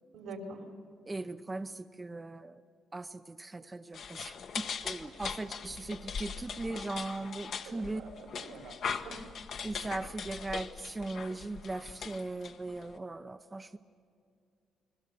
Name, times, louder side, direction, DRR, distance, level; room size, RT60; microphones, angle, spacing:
voice 1, 0.1-0.7 7.7-8.8 9.0-9.2, right 2 dB, 85° right, 3 dB, 3.6 m, -45 dB
voice 2, 1.1-2.6 2.9-8.0 9.6-13.8, right 2 dB, 20° right, 8 dB, 0.7 m, -39 dB
sound 1, 3.9-13.0, left 6 dB, 65° left, 1.3 m, -40 dB
29.5 x 21.0 x 6.9 m, 2.5 s
cardioid pair, 90°, 0 cm